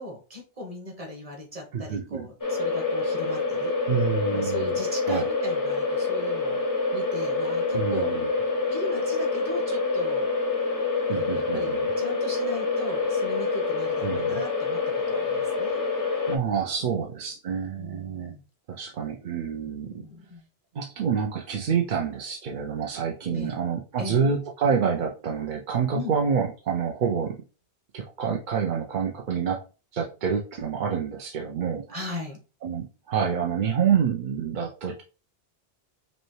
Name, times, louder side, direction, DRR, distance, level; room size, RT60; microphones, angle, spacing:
voice 1, 0.0-3.7 4.3-6.6 6.9-8.1 8.7-10.3 11.1-14.8 15.1-15.8 16.9-17.1 17.8-18.4 19.7-20.4 23.3-23.6 24.0-24.2 25.9-26.1 31.9-32.4, left 1 dB, 30° right, 1 dB, 1.4 m, -38 dB
voice 2, 1.7-2.3 3.9-4.8 5.1-5.3 7.7-8.3 11.1-11.9 14.0-14.4 16.3-18.3 18.7-20.0 20.7-27.4 27.9-29.6 29.9-32.1 32.6-35.0, right 6 dB, 55° right, 1 dB, 0.6 m, -27 dB
sound 1, 2.4-16.4, left 3 dB, 25° left, 0.5 m, -26 dB
5.2 x 2.3 x 3.2 m, 0.34 s
omnidirectional pair, 1.2 m